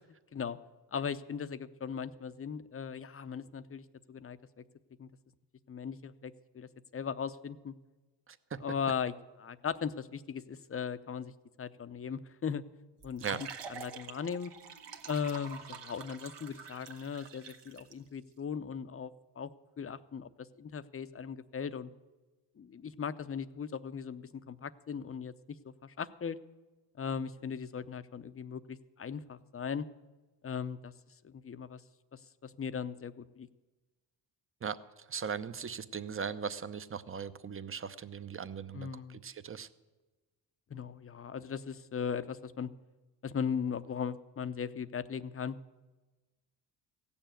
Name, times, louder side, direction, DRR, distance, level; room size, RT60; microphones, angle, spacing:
voice 1, 0.9-4.6 5.0-5.1 5.7-7.7 8.6-9.1 9.4-11.3 11.6-12.6 13.0-14.5 15.1-19.5 19.8-20.3 20.6-21.9 22.6-25.3 25.6-26.4 27.0-29.9 30.4-30.9 31.2-31.8 32.1-33.5 38.7-39.2 40.7-42.7 43.2-45.6, left 7 dB, 30° left, 13 dB, 0.7 m, -38 dB
voice 2, 8.3-8.6 13.2-13.4 34.6-39.7, right 6 dB, 30° right, 13 dB, 0.8 m, -39 dB
sound 1, 13.0-17.9, right 6 dB, 65° right, 1.3 m, -47 dB
16.0 x 7.1 x 9.0 m, 1.2 s
cardioid pair, 75°, 45 cm